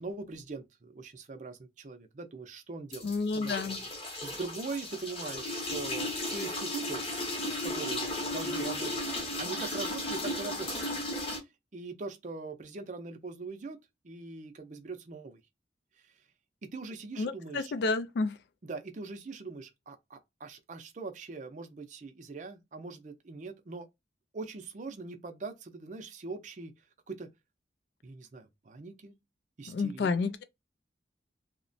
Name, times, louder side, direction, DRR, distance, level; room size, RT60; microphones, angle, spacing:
voice 1, 0.0-7.1 7.6-10.9 11.7-13.8 14.0-15.4 16.7-17.7 18.6-23.9 24.3-26.7 27.1-27.3 28.0-29.1 29.6-30.3, right 3 dB, 40° right, 0.5 m, -42 dB
sound 1, 2.9-11.4, left 1 dB, 30° left, 0.8 m, -35 dB
voice 2, 3.0-3.8 17.2-18.3 29.7-30.4, left 4 dB, 60° left, 0.3 m, -30 dB
2.8 x 2.1 x 2.6 m
head